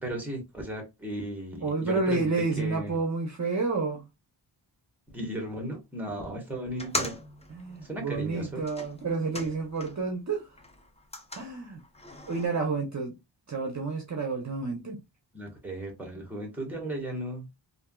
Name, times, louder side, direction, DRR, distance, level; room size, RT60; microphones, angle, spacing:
voice 1, 0.0-2.3 2.6-3.0 5.1-7.2 7.8-8.6 15.3-17.5, right 1 dB, 5° right, 1.3 m, -36 dB
voice 2, 1.6-4.0 7.5-10.5 11.3-11.8 12.3-13.1 13.5-15.0, right 4 dB, 40° right, 0.7 m, -30 dB
sound 1, 6.7-10.1 10.5-12.5, left 2 dB, 15° left, 0.5 m, -39 dB
3.4 x 2.5 x 2.3 m
wide cardioid pair, 115°, 46 cm